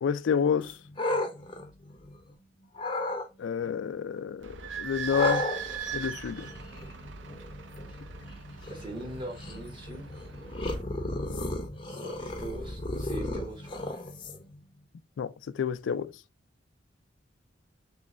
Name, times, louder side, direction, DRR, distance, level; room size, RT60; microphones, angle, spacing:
voice 1, 0.0-0.8 3.4-5.4 5.9-6.5 15.2-16.1, left 7 dB, 85° left, 0.4 m, -29 dB
sound 1, 0.6-2.3 2.8-3.3 5.1-14.6, left 1 dB, 25° left, 0.6 m, -35 dB
Idling / Squeak, 4.4-10.8, right 7 dB, 75° right, 0.5 m, -39 dB
voice 2, 8.7-10.1 11.8-13.9, right 1 dB, 25° right, 1.3 m, -41 dB
3.2 x 3.1 x 3.7 m
head